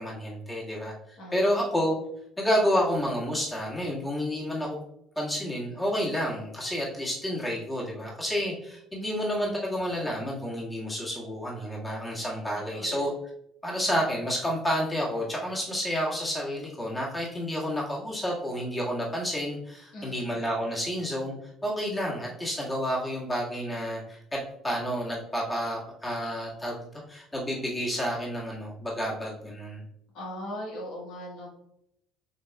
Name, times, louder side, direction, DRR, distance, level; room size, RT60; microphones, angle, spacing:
voice 1, 0.0-1.9 2.4-4.8 5.2-13.1 13.6-21.3 21.6-29.8, equal, 15° left, -4 dB, 1.8 m, -30 dB
voice 2, 12.7-13.0 19.9-20.3 30.1-31.5, left 1 dB, 65° left, -4 dB, 1.5 m, -39 dB
7.4 x 2.9 x 2.3 m, 0.78 s
hypercardioid pair, 60°, 0 cm